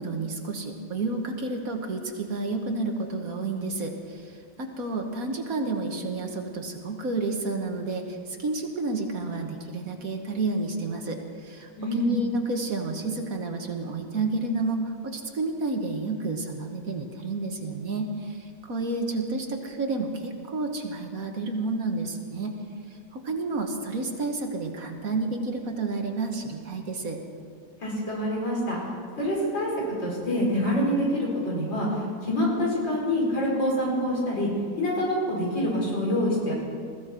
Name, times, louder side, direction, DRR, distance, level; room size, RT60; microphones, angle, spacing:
voice 1, 0.0-22.5 22.9-27.2, right 3 dB, 55° right, 3 dB, 1.7 m, -30 dB
voice 2, 11.8-12.1 27.8-28.8 29.2-29.7 30.0-34.5 34.8-36.5, left 1 dB, 85° left, -4 dB, 5.5 m, -26 dB
20.5 x 15.0 x 4.4 m, 2.3 s
omnidirectional pair, 1.9 m